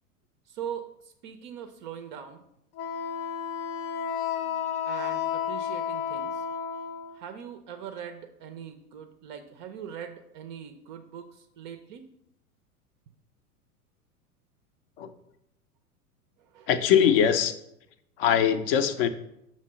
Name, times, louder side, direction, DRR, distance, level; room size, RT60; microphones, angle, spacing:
voice 1, 0.5-2.4 4.9-6.4 7.1-12.1 16.5-16.7, right 8 dB, 35° right, 7 dB, 0.4 m, -41 dB
Wind instrument woodwind instrument, 2.8-7.2, left 8 dB, 65° left, 0.9 m, -32 dB
voice 2, 16.7-17.5 18.2-19.1, left 8 dB, 40° left, 11 dB, 0.5 m, -22 dB
6.5 x 3.0 x 5.6 m, 0.80 s
figure-of-eight pair, 90°, 46 cm